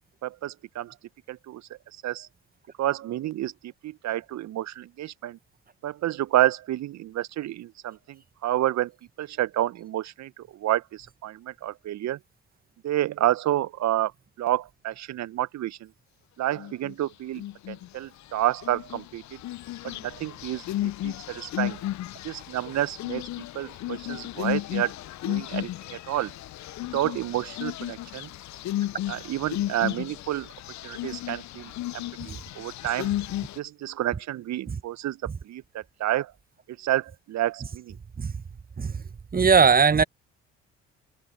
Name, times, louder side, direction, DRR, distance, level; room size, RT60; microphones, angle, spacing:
voice 1, 0.2-0.9 1.3-1.6 2.0-2.3 2.8-5.4 5.8-8.9 9.2-12.2 12.8-14.1 14.4-15.8 16.4-19.2 19.8-21.8 22.2-23.3 23.5-24.9 25.3-26.3 26.9-28.3 29.1-30.5 30.8-33.1 33.6-36.3 36.8-37.9, right 13 dB, 50° right, 1.2 m, -29 dB
sound 1, 16.5-16.9 17.3-17.9 18.4-33.6, left 14 dB, 55° left, 1.2 m, -34 dB
voice 2, 39.3-40.0, right 5 dB, 25° right, 1.4 m, -18 dB
figure-of-eight pair, 50°, 35 cm